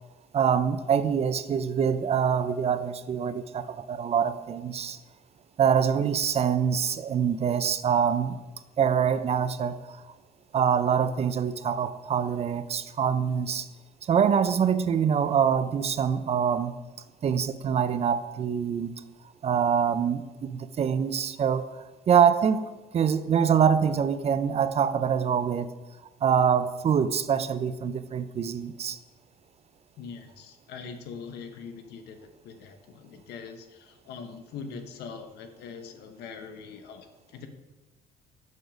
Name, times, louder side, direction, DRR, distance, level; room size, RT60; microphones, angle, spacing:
voice 1, 0.3-5.0 5.6-8.4 8.8-10.0 10.5-13.7 14.0-16.7 17.2-18.9 19.4-25.7 26.2-29.0, right 7 dB, 40° right, 12 dB, 0.5 m, -25 dB
voice 2, 30.0-32.2 32.4-37.5, left 5 dB, 80° left, 7 dB, 1.0 m, -42 dB
6.8 x 6.3 x 5.1 m, 1.2 s
cardioid pair, 110°, 17 cm